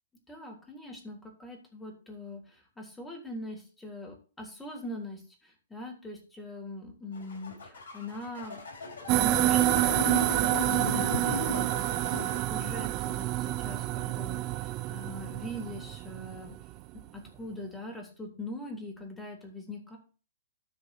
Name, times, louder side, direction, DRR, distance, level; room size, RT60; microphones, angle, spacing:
voice 1, 0.3-8.6 9.1-16.5 17.1-20.0, left 1 dB, 10° left, 2 dB, 3.3 m, -42 dB
sound 1, 7.1-12.4, left 3 dB, 65° left, 4.7 m, -36 dB
sound 2, 9.1-16.7, right 16 dB, 35° right, 0.6 m, -28 dB
13.5 x 4.9 x 4.2 m, 0.36 s
hypercardioid pair, 115°, 0 cm